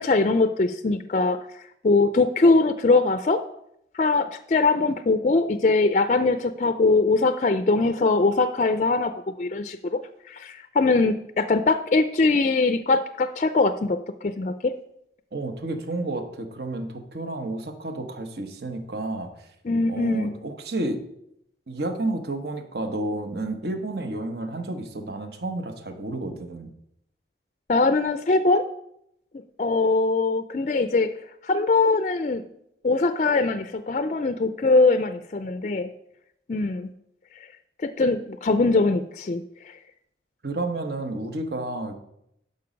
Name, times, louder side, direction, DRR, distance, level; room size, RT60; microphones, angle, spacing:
voice 1, 0.0-1.4 1.8-3.4 3.9-10.0 10.3-14.7 19.6-20.3 27.7-28.6 29.6-31.1 31.4-32.4 32.8-35.9 36.5-36.9 37.8-39.8, left 3 dB, 40° left, 10 dB, 0.4 m, -22 dB
voice 2, 15.3-19.5 19.9-21.0 21.7-26.7 40.4-41.9, right 2 dB, 65° right, 7 dB, 1.1 m, -31 dB
11.5 x 5.4 x 5.1 m, 0.77 s
head